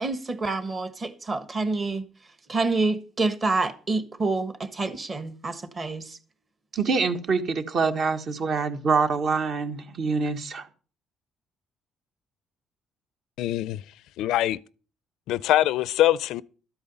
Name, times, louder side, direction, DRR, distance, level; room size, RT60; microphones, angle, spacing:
voice 1, 0.0-2.1 2.5-6.2, right 3 dB, 25° right, 1.5 m, -27 dB
voice 2, 6.7-10.7, right 4 dB, 45° right, 1.5 m, -25 dB
voice 3, 13.4-13.8 14.2-14.6 15.3-16.4, left 14 dB, 85° left, 0.5 m, -23 dB
13.0 x 8.8 x 5.4 m
cardioid pair, 140°, 0 cm